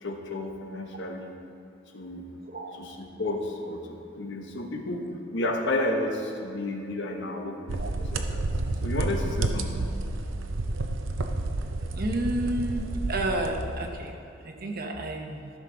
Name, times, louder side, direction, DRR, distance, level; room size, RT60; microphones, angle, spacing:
voice 1, 0.0-1.4 1.9-2.3 2.7-5.0 5.3-8.5 8.8-9.9, left 1 dB, 65° left, 2 dB, 1.1 m, -32 dB
sound 1, 7.7-14.0, right 2 dB, 80° right, 0.7 m, -30 dB
voice 2, 12.0-14.1 14.4-15.5, right 1 dB, 50° right, 3 dB, 1.0 m, -30 dB
14.0 x 6.3 x 3.9 m, 2.6 s
head